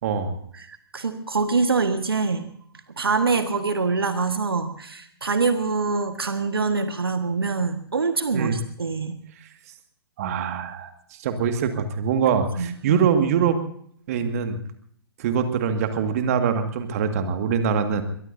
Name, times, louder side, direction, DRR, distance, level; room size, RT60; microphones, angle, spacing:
voice 1, 0.0-0.4 8.3-8.6 10.2-13.6 14.1-14.6 15.2-18.0, right 7 dB, 35° right, 7 dB, 2.0 m, -23 dB
voice 2, 0.5-2.5 3.0-9.2 12.6-13.1, right 4 dB, 70° right, 8 dB, 1.6 m, -25 dB
23.0 x 22.5 x 2.7 m, 0.63 s
figure-of-eight pair, 125°, 13 cm